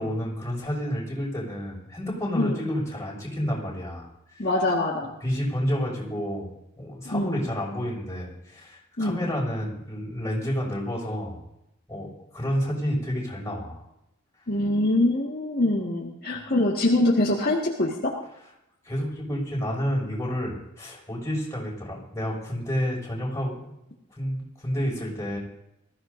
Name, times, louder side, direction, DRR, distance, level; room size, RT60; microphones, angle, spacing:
voice 1, 0.0-4.5 5.2-6.5 6.8-11.4 11.9-13.8 18.8-23.7 24.1-25.4, equal, 15° left, -4 dB, 5.8 m, -30 dB
voice 2, 4.4-5.1 7.1-7.4 9.0-9.2 14.5-18.1, left 1 dB, 50° left, -3 dB, 1.8 m, -24 dB
21.0 x 15.0 x 2.7 m, 0.84 s
head